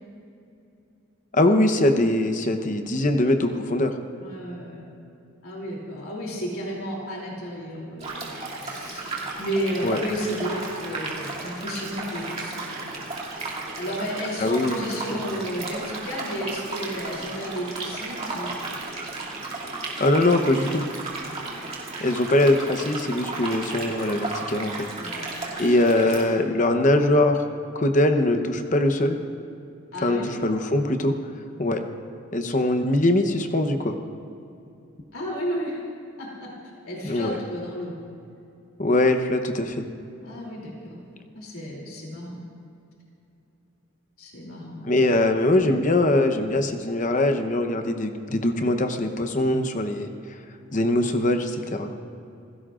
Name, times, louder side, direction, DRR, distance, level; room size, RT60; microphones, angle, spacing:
voice 1, 1.3-3.9 9.8-10.0 14.4-14.7 15.1-15.2 20.0-20.9 22.0-24.9 25.6-27.4 27.7-29.2 30.0-31.1 31.6-31.8 32.3-34.0 37.0-37.4 38.8-39.9 44.8-50.1 50.7-51.9, left 1 dB, 35° left, 6 dB, 0.9 m, -22 dB
voice 2, 4.2-4.8 5.4-12.9 13.7-18.6 21.1-21.3 25.0-25.3 29.9-30.3 35.1-35.8 36.2-36.5 36.8-37.9 40.2-41.0 41.3-42.4 44.2-44.9, equal, 80° left, -3 dB, 3.0 m, -32 dB
sound 1, 8.0-26.2, right 3 dB, 30° right, 2.6 m, -34 dB
28.5 x 16.5 x 2.5 m, 2.7 s
head